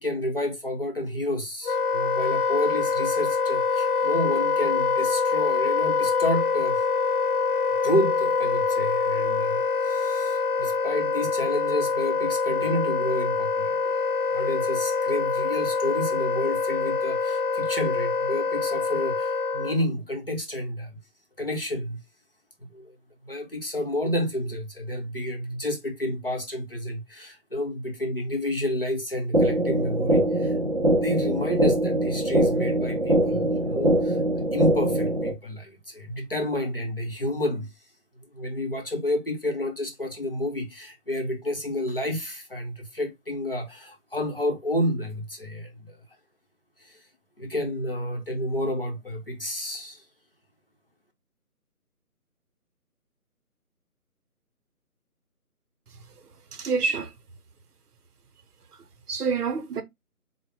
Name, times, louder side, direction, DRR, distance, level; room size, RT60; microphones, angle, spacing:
voice 1, 0.0-6.8 7.8-13.9 14.3-21.0 21.4-22.0 22.6-22.9 23.2-34.2 34.5-37.7 38.3-46.0 46.8-47.0 47.4-50.0, left 1 dB, 40° left, 0.7 m, -30 dB
Wind instrument woodwind instrument, 1.6-19.9, left 5 dB, 75° left, 0.9 m, -25 dB
sound 1, 29.3-35.3, right 1 dB, 45° right, 0.5 m, -23 dB
voice 2, 56.6-57.1 59.1-59.8, right 5 dB, 80° right, 0.8 m, -26 dB
3.7 x 2.1 x 3.2 m
figure-of-eight pair, 175°, 46 cm